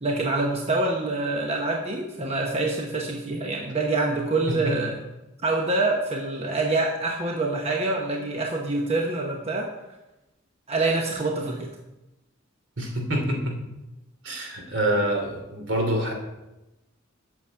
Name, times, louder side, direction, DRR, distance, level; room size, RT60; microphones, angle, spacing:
voice 1, 0.0-5.0 5.4-9.7 10.7-11.7, right 2 dB, 30° right, 1 dB, 1.0 m, -26 dB
voice 2, 12.8-13.6 14.2-16.1, right 1 dB, 70° right, 2 dB, 2.8 m, -26 dB
8.7 x 6.7 x 7.6 m, 0.97 s
head